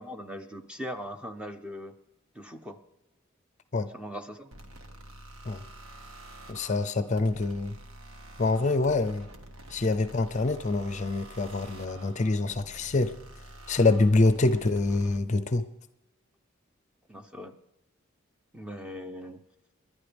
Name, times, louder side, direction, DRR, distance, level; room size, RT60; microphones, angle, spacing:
voice 1, 0.0-2.0 2.3-2.8 3.9-4.5 14.2-14.3 17.1-17.6 18.5-19.4, equal, 5° right, 7 dB, 0.7 m, -40 dB
sound 1, 4.5-15.2, right 1 dB, 80° right, 1.7 m, -48 dB
voice 2, 6.5-7.8 8.4-9.3 9.7-13.1 13.7-15.6, left 3 dB, 35° left, 11 dB, 0.5 m, -25 dB
29.5 x 11.5 x 3.4 m, 0.95 s
head